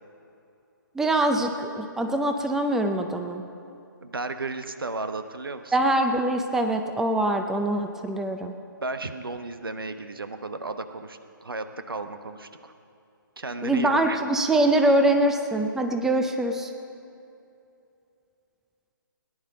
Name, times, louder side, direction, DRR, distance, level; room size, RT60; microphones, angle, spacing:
voice 1, 0.9-3.4 5.7-8.5 13.6-16.7, right 1 dB, 5° right, 5 dB, 0.6 m, -23 dB
voice 2, 4.0-5.8 8.8-12.7 13.4-14.2, right 3 dB, 85° right, 9 dB, 1.0 m, -34 dB
18.0 x 10.5 x 5.2 m, 2.7 s
figure-of-eight pair, 140°, 12 cm